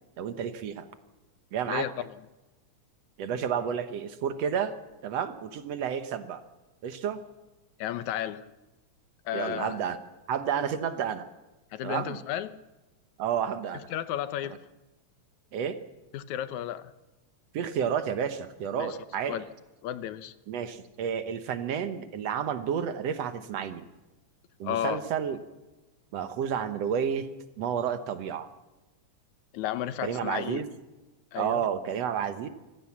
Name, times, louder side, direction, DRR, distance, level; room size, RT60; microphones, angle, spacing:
voice 1, 0.2-0.9 1.5-1.9 3.2-4.7 5.0-6.4 6.8-7.2 9.3-10.0 10.3-11.3 11.8-12.2 13.2-13.9 15.5-15.8 17.5-19.4 20.5-23.9 24.6-25.4 26.1-27.3 27.6-28.5 30.0-30.7 31.4-32.5, right 8 dB, 65° right, 10 dB, 2.1 m, -30 dB
voice 2, 1.7-2.2 7.8-8.5 9.3-9.8 11.7-12.6 13.9-14.6 16.1-16.9 18.8-19.0 19.3-19.5 19.8-20.3 24.6-25.0 29.5-30.6 31.3-31.6, left 11 dB, 75° left, 13 dB, 2.2 m, -33 dB
24.5 x 16.0 x 7.3 m, 1.1 s
omnidirectional pair, 3.4 m